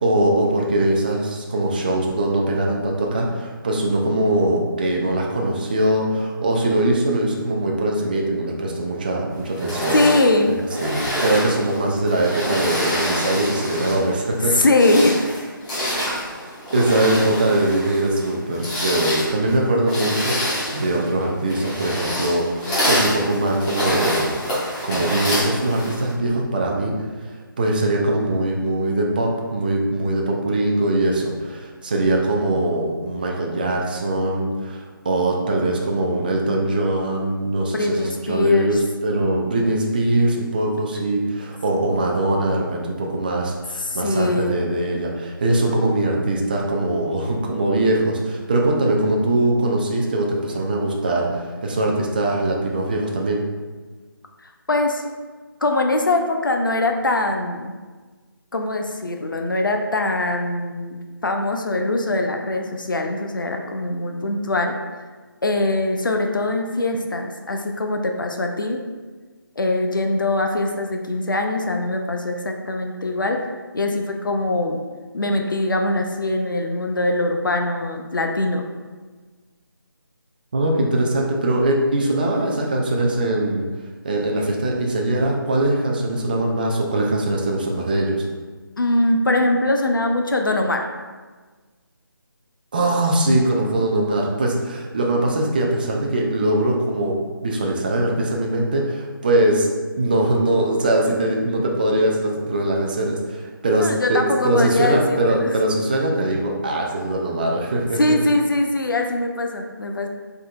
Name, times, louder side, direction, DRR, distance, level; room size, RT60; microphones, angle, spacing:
voice 1, 0.0-10.0 10.6-14.6 16.7-20.4 20.7-24.3 24.8-53.4 80.5-83.6 84.0-88.2 92.7-99.7 100.0-108.0, right 1 dB, 25° right, 0 dB, 0.4 m, -21 dB
sound 1, 9.5-14.1 14.6-26.1, equal, 25° left, 1.3 m, -26 dB
voice 2, 9.9-10.6 14.4-15.2 37.7-38.8 41.7-42.0 43.8-44.6 54.4-55.0 55.6-57.7 58.5-64.7 65.4-68.8 69.6-73.4 73.7-74.8 75.1-78.7 88.8-90.9 103.8-105.6 108.0-110.1, left 2 dB, 65° left, 3 dB, 0.5 m, -22 dB
4.9 x 3.7 x 2.4 m, 1.4 s
figure-of-eight pair, 155°, 12 cm